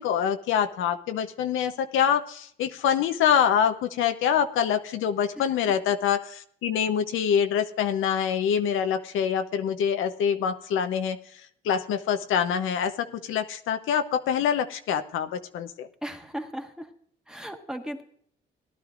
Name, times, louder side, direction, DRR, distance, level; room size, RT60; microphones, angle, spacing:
voice 1, 0.0-11.2 11.6-15.9, left 8 dB, 85° left, 8 dB, 0.8 m, -25 dB
voice 2, 16.0-16.9 17.3-18.0, equal, 5° right, 5 dB, 1.4 m, -36 dB
18.5 x 11.5 x 2.5 m, 0.65 s
cardioid pair, 90°, 20 cm